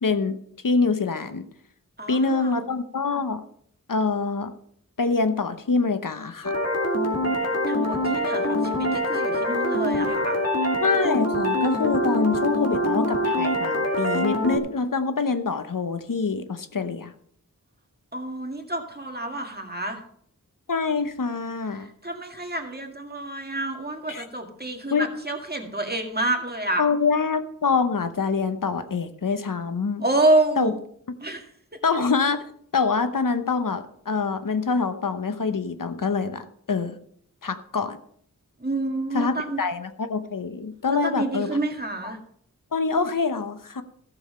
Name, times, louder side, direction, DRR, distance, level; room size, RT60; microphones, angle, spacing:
voice 1, 0.0-0.4 0.6-1.5 2.1-3.4 3.9-4.5 5.0-6.5 10.8-17.1 20.7-21.9 24.1-24.3 24.9-25.1 26.8-30.0 30.6-30.7 31.8-32.4 32.7-37.0 37.4-38.0 39.1-41.5 42.0-42.2 42.7-43.8, left 4 dB, 70° left, 10 dB, 0.9 m, -25 dB
voice 2, 2.0-2.6 7.7-10.4 18.1-20.0 21.8-26.8 30.0-30.8 31.2-31.5 38.6-39.6 40.9-42.2, right 2 dB, 30° right, 3 dB, 1.9 m, -28 dB
sound 1, 6.4-14.6, left 1 dB, 50° left, 2.4 m, -24 dB
14.0 x 7.1 x 5.6 m, 0.66 s
wide cardioid pair, 55°, 33 cm